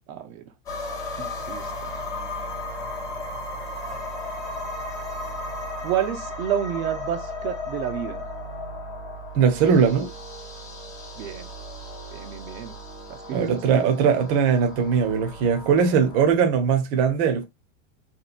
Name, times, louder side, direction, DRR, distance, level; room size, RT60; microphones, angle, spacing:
voice 1, 0.1-0.4 1.2-1.9 5.8-8.3 11.1-11.5 12.1-12.8 13.1-13.9, right 10 dB, 90° right, 0.7 m, -30 dB
sound 1, 0.7-16.3, left 1 dB, 10° left, 0.3 m, -35 dB
voice 2, 9.3-10.1 13.3-17.4, right 6 dB, 40° right, 0.6 m, -20 dB
2.9 x 2.2 x 2.4 m
supercardioid pair, 155°, 39 cm